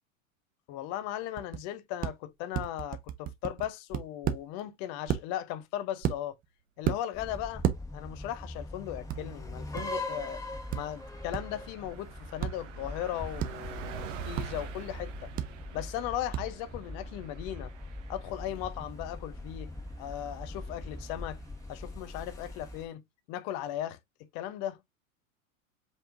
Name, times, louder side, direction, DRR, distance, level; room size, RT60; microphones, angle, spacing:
voice 1, 0.7-6.4 6.8-7.6 7.9-10.4 10.7-15.3 15.7-17.7 18.1-19.7 20.0-21.4 21.7-24.8, left 12 dB, 40° left, 0.7 m, -37 dB
sound 1, 1.4-1.6 2.0-2.1 2.5-4.4 5.1-5.2 6.0-6.4 6.8-7.0 7.6-7.8 9.1-9.2 9.7-9.8 10.7-10.8 11.3-11.4 12.4-12.5 13.4-13.5 14.3-14.5 15.4-15.5 16.3-16.4, right 10 dB, 20° right, 0.5 m, -30 dB
sound 2, 7.1-22.9, left 2 dB, 10° left, 1.3 m, -42 dB
Car passing by, 7.5-7.9 8.2-8.4 8.7-22.9, right 10 dB, 65° right, 1.0 m, -49 dB
5.1 x 3.5 x 2.5 m
figure-of-eight pair, 90°, 41 cm